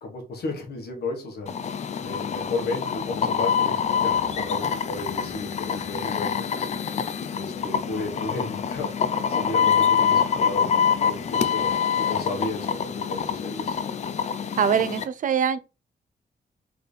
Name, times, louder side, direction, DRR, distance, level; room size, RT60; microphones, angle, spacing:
voice 1, 0.0-1.5 2.0-6.8 7.3-8.9 9.3-13.8, left 3 dB, 75° left, 1.4 m, -33 dB
sound 1, 1.5-15.0, left 7 dB, 45° left, 0.4 m, -25 dB
voice 2, 14.6-15.6, right 7 dB, 50° right, 0.4 m, -23 dB
3.9 x 3.4 x 4.0 m
wide cardioid pair, 160°, 17 cm